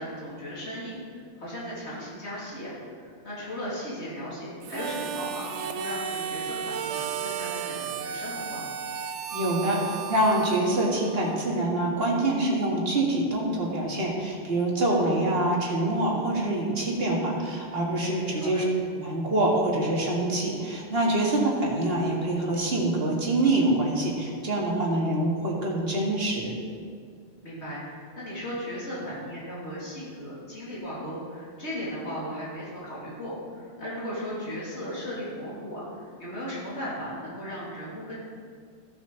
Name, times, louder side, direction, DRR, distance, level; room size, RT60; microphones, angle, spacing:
voice 1, 0.0-8.7 15.0-15.2 18.2-18.6 27.4-38.2, equal, 70° left, -7 dB, 3.1 m, -36 dB
Harmonica, 4.6-11.5, right 7 dB, 85° right, 0.9 m, -34 dB
voice 2, 9.3-18.6 19.0-26.5, right 1 dB, 60° right, -3 dB, 2.1 m, -25 dB
15.5 x 6.3 x 4.0 m, 2.1 s
omnidirectional pair, 1.2 m